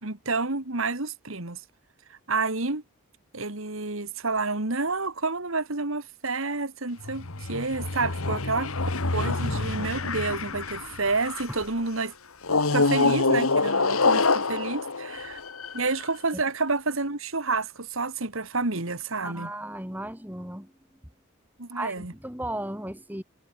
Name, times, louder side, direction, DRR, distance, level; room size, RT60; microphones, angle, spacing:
voice 1, 0.0-1.6 2.1-2.8 3.3-12.1 12.7-15.4 15.7-19.5 21.6-22.1, right 3 dB, 70° right, 2.2 m, -29 dB
sound 1, 7.0-11.6 12.4-16.0, left 3 dB, 85° left, 1.8 m, -26 dB
voice 2, 19.2-20.7 21.7-23.2, right 1 dB, 10° right, 3.3 m, -35 dB
head